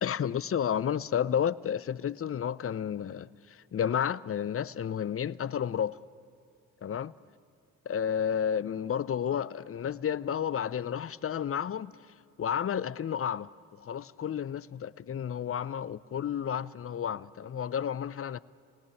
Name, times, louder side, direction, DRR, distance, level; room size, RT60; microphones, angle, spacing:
voice 1, 0.0-3.3 3.7-6.0 6.8-7.1 7.9-11.9 12.4-13.5 13.8-18.4, left 8 dB, 40° left, 19 dB, 0.7 m, -31 dB
28.0 x 18.5 x 7.2 m, 2.3 s
hypercardioid pair, 45°, 33 cm